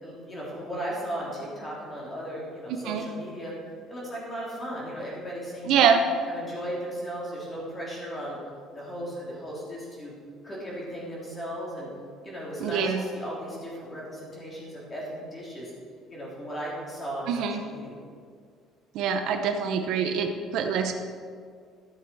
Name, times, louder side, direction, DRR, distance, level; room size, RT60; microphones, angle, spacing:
voice 1, 0.0-3.5 3.9-5.9 6.2-8.4 8.7-10.1 10.4-11.9 12.2-15.7 16.1-18.0, equal, 20° left, -5 dB, 3.2 m, -36 dB
voice 2, 5.7-6.0 12.6-13.1 17.3-17.6 18.9-21.0, right 7 dB, 60° right, 5 dB, 0.8 m, -24 dB
13.5 x 7.0 x 4.8 m, 2.1 s
cardioid pair, 165°, 0 cm